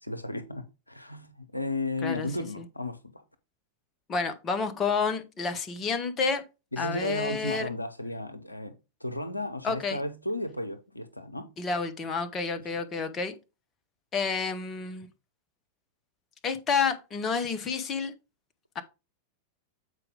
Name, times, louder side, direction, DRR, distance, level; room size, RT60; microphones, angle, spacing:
voice 1, 0.0-3.2 6.7-11.5, left 2 dB, 85° left, 0.7 m, -34 dB
voice 2, 4.1-6.4 6.8-7.7 9.6-10.0 11.6-13.3 14.1-15.1 16.4-18.1 18.7-18.8, left 5 dB, 25° left, 1.3 m, -29 dB
8.2 x 4.7 x 3.8 m
figure-of-eight pair, 90°, 0 cm